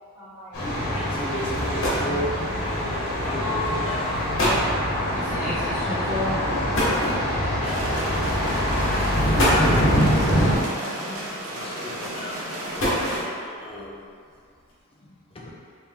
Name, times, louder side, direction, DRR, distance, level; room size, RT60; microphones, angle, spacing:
voice 1, 0.1-0.8 3.2-3.7, left 5 dB, 30° right, -14 dB, 1.3 m, -39 dB
Thunder, 0.5-10.5, equal, 80° left, 1.0 m, -24 dB
voice 2, 0.9-4.2 7.6-7.8 9.0-10.0 11.5-12.4 13.4-14.1 15.0-15.8, left 1 dB, 25° left, -3 dB, 0.4 m, -35 dB
sound 1, 1.6-2.2 3.2-3.4 4.0-4.1 4.4-4.7 6.7-7.6 8.5-8.7 9.2-9.9 11.1-11.6 12.4-13.5, equal, 60° left, 1.0 m, -25 dB
voice 3, 5.2-6.4 9.7-11.2, left 1 dB, 10° right, -14 dB, 1.1 m, -34 dB
sound 2, 7.6-13.2, equal, 85° right, 0.8 m, -33 dB
3.4 x 2.8 x 3.5 m, 2.2 s
head